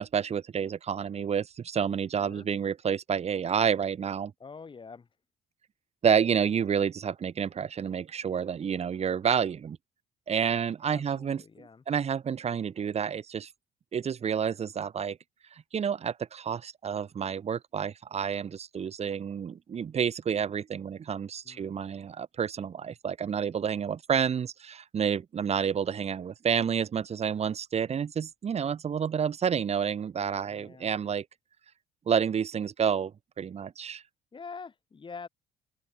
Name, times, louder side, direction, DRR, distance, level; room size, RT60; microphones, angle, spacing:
voice 1, 0.0-4.3 6.0-9.8 10.3-13.5 13.9-15.2 15.5-31.2 32.1-34.0, right 7 dB, 40° right, 0.8 m, -29 dB
voice 2, 4.4-5.1 10.9-11.8 21.4-21.8 30.5-30.9 34.3-35.3, left 5 dB, 30° left, 1.2 m, -45 dB
open air
hypercardioid pair, 60°, 17 cm